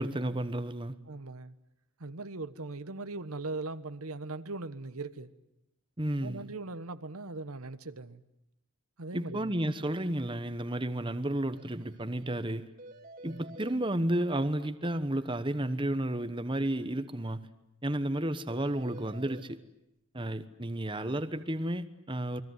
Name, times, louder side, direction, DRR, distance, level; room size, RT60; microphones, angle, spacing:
voice 1, 0.0-0.9 6.0-6.5 9.1-12.7 13.2-17.5 17.8-19.6 20.1-22.4, right 1 dB, 20° right, 1.1 m, -32 dB
voice 2, 1.1-1.5 2.0-5.3 6.2-8.2 9.0-9.5 13.2-13.6, right 3 dB, 85° right, 1.3 m, -40 dB
sound 1, 11.5-11.7 11.9-12.0 12.3-12.4 12.8-13.8 18.5-19.5, right 2 dB, 40° right, 1.9 m, -49 dB
29.0 x 21.5 x 9.5 m
head